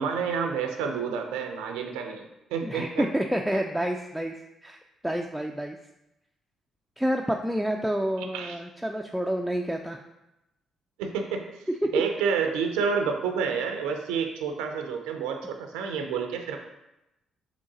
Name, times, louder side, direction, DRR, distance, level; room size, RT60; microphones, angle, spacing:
voice 1, 0.0-2.2 2.5-3.1 8.3-8.6 11.0-11.4 11.9-16.6, right 6 dB, 90° right, 4 dB, 0.4 m, -29 dB
voice 2, 2.6-4.3 4.6-4.8 5.0-5.8 7.0-10.0 11.8-11.9, right 1 dB, 5° right, 2 dB, 0.3 m, -28 dB
3.8 x 3.1 x 3.9 m, 0.91 s
supercardioid pair, 55°, 0 cm